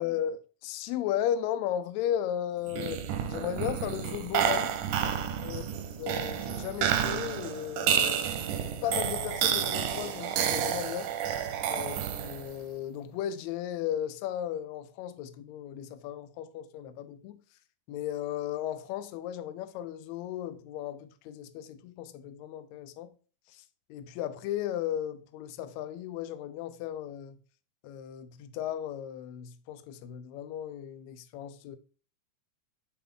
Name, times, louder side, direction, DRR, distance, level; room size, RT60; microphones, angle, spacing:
voice 1, 0.0-3.0 3.3-4.7 5.4-5.6 6.0-8.3 8.8-11.1 11.7-17.4 17.9-23.1 23.5-23.6 23.9-27.4 27.8-31.8, left 11 dB, 80° left, 1.7 m, -35 dB
sound 1, 2.7-12.6, right 9 dB, 85° right, 2.1 m, -30 dB
6.7 x 3.9 x 3.6 m
omnidirectional pair, 3.5 m